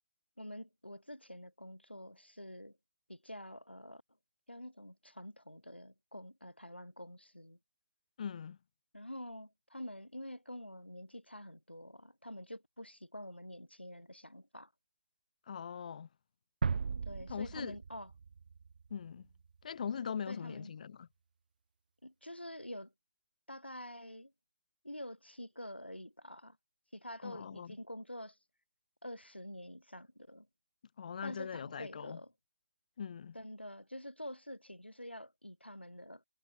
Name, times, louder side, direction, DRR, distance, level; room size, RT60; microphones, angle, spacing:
voice 1, 0.4-2.8 3.1-4.0 4.5-7.6 8.9-14.7 17.1-18.1 20.3-20.7 22.0-22.9 23.5-24.3 24.8-26.6 26.9-28.4 29.0-30.5 31.2-32.3 33.3-36.2, left 1 dB, 90° left, 3.6 m, -47 dB
voice 2, 8.2-8.6 15.5-16.1 17.3-17.8 18.9-19.3 19.6-21.1 27.2-27.7 31.0-32.2 33.0-33.4, left 7 dB, 45° left, 7.8 m, -41 dB
sound 1, 16.6-19.5, right 5 dB, 55° right, 1.4 m, -37 dB
figure-of-eight pair, 140°, 6 cm